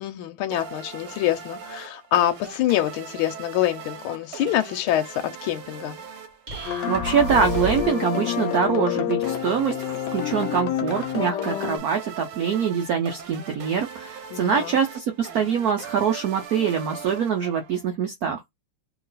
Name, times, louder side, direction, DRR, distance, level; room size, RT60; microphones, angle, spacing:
voice 1, 0.0-6.0 14.3-14.8, left 12 dB, 85° left, 1.5 m, -26 dB
sound 1, 0.5-17.9, right 7 dB, 90° right, 1.5 m, -40 dB
sound 2, 6.5-8.1, right 3 dB, 25° right, 1.1 m, -31 dB
sound 3, 6.7-11.8, left 11 dB, 65° left, 1.2 m, -28 dB
voice 2, 6.9-18.4, right 7 dB, 70° right, 0.8 m, -24 dB
3.0 x 2.9 x 3.9 m
omnidirectional pair, 2.3 m